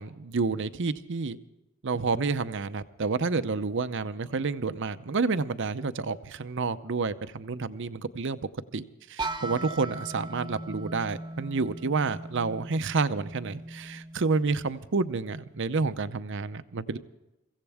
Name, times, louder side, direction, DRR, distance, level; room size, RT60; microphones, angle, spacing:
voice 1, 0.0-1.4 1.8-8.4 8.7-17.0, right 4 dB, 60° right, 12 dB, 0.7 m, -29 dB
sound 1, 9.2-15.0, right 2 dB, 20° right, 0.8 m, -39 dB
23.5 x 15.5 x 3.5 m, 0.96 s
head